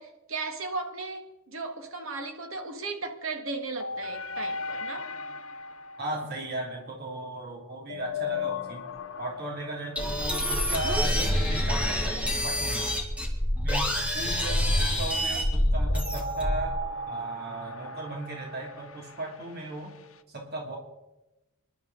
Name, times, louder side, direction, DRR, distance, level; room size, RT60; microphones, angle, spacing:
voice 1, 0.0-5.1, right 3 dB, 65° right, 1.9 m, -36 dB
sound 1, 3.8-7.4 7.9-10.4 15.9-20.2, left 3 dB, 65° left, 0.8 m, -37 dB
voice 2, 6.0-8.8 9.2-12.9 13.6-16.8 17.1-19.9 20.3-20.8, right 1 dB, 45° right, 2.8 m, -36 dB
sound 2, 10.0-16.8, equal, 5° right, 2.1 m, -26 dB
26.0 x 11.5 x 4.0 m
head